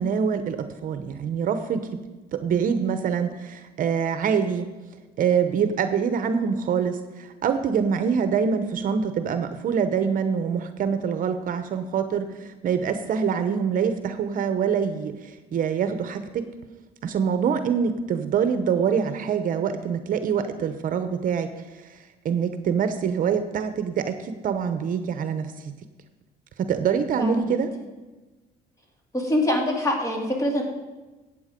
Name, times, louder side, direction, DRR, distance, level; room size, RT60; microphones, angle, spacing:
voice 1, 0.0-2.0 2.3-4.7 5.2-16.5 17.0-21.5 22.2-25.7 26.6-27.7, right 7 dB, 55° right, 9 dB, 0.9 m, -25 dB
voice 2, 27.2-27.5 29.1-30.6, left 1 dB, 20° left, 1 dB, 2.6 m, -24 dB
14.5 x 8.6 x 5.2 m, 1.2 s
cardioid pair, 110°, 17 cm